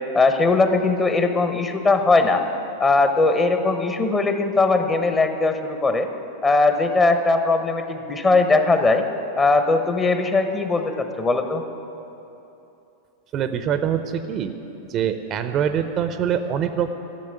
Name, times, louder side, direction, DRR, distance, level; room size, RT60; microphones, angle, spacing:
voice 1, 0.1-2.4 2.8-6.1 6.4-9.0 9.4-11.6, left 3 dB, 20° left, 7 dB, 1.0 m, -19 dB
voice 2, 13.3-14.5 14.9-16.9, right 8 dB, 30° right, 10 dB, 0.6 m, -24 dB
11.5 x 7.6 x 10.0 m, 2.9 s
figure-of-eight pair, 90°, 0 cm